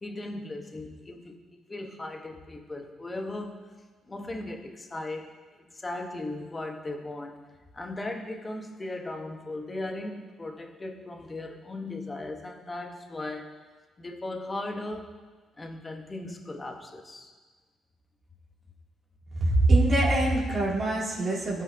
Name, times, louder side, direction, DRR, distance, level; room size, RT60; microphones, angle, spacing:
voice 1, 0.0-1.4 1.7-3.6 4.1-5.3 5.7-7.4 7.7-13.5 14.0-15.1 15.6-17.3, left 2 dB, 25° left, 3 dB, 1.2 m, -37 dB
voice 2, 19.3-21.6, right 2 dB, 45° right, -5 dB, 2.7 m, -23 dB
16.5 x 5.7 x 2.8 m, 1.4 s
cardioid pair, 90°, 0 cm